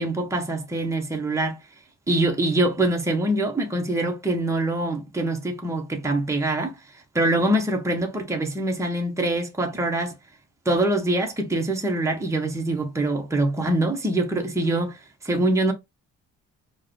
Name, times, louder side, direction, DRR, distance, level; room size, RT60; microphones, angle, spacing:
voice 1, 0.0-1.6 2.1-6.8 7.1-10.1 10.6-15.7, right 1 dB, 10° right, 0.9 m, -24 dB
4.6 x 2.2 x 3.1 m
cardioid pair, 90°, 30 cm